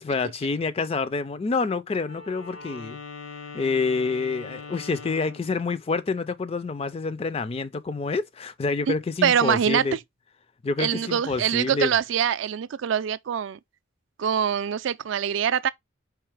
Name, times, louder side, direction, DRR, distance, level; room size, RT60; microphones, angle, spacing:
voice 1, 0.0-3.0 3.5-10.0 10.6-11.9, left 4 dB, 30° left, 0.3 m, -27 dB
Wind instrument woodwind instrument, 2.0-5.5, left 4 dB, 85° left, 1.3 m, -41 dB
voice 2, 9.2-9.8 10.8-13.6 14.2-15.7, right 8 dB, 65° right, 0.3 m, -24 dB
4.7 x 3.1 x 3.3 m
head